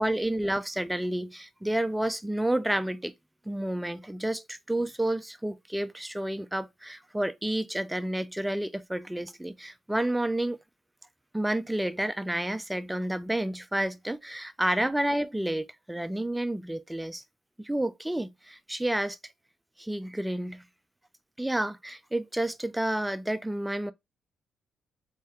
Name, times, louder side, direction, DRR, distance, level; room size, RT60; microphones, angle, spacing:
voice 1, 0.0-3.1 3.5-10.6 11.3-17.2 17.6-19.2 19.8-20.6 21.4-23.9, right 1 dB, 5° right, 0.3 m, -30 dB
3.0 x 2.7 x 2.3 m
cardioid pair, 90°, 0 cm